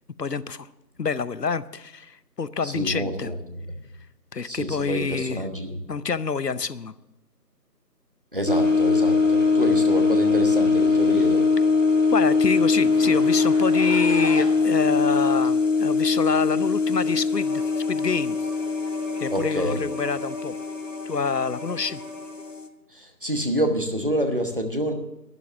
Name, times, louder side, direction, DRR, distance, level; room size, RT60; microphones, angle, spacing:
voice 1, 0.2-0.7 1.0-3.3 4.3-5.4 5.9-6.9 12.1-17.6 17.9-18.4 19.2-20.5 21.1-22.0, left 5 dB, 70° left, 17 dB, 0.8 m, -27 dB
voice 2, 2.6-3.6 4.5-5.8 8.3-11.4 19.3-19.8 22.9-24.9, equal, 35° right, 5 dB, 1.1 m, -27 dB
sound 1, 8.5-22.7, left 4 dB, 50° left, 1.0 m, -22 dB
Zipper (clothing), 11.6-11.7 11.9-12.1 12.7-14.7 15.4-15.5 16.6-16.7, equal, 55° right, 6.4 m, -35 dB
Bowed string instrument, 17.3-22.6, equal, 10° left, 3.8 m, -40 dB
12.0 x 10.5 x 7.0 m, 0.93 s
figure-of-eight pair, 170°, 49 cm